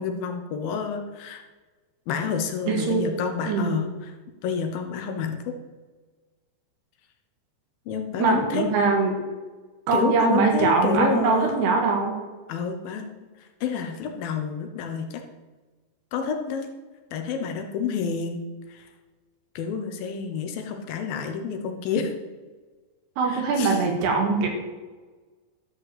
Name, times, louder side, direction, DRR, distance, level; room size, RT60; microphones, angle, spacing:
voice 1, 0.0-1.4 2.1-4.1 4.4-5.4 7.9-8.6 9.9-11.7 12.5-13.1 13.4-15.2 16.1-16.7 17.1-18.4 18.7-18.9 19.6-22.1 23.2-23.8, left 6 dB, 70° left, 4 dB, 2.6 m, -29 dB
voice 2, 2.7-3.1 3.5-3.9 8.2-9.2 9.9-12.1 23.2-24.5, right 4 dB, 85° right, 2 dB, 4.0 m, -22 dB
13.0 x 5.3 x 7.9 m, 1.3 s
omnidirectional pair, 4.6 m